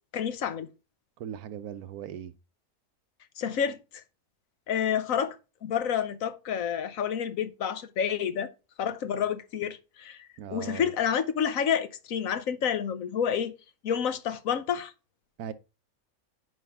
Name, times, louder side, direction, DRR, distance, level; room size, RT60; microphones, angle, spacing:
voice 1, 0.1-0.7 3.4-4.0 4.7-5.4 5.6-8.5 8.8-10.2 10.5-13.5 13.8-14.9, left 8 dB, 70° left, 1.2 m, -29 dB
voice 2, 1.2-2.3 10.4-10.9 15.4-15.5, right 9 dB, 90° right, 1.2 m, -38 dB
9.3 x 5.3 x 3.5 m
omnidirectional pair, 1.5 m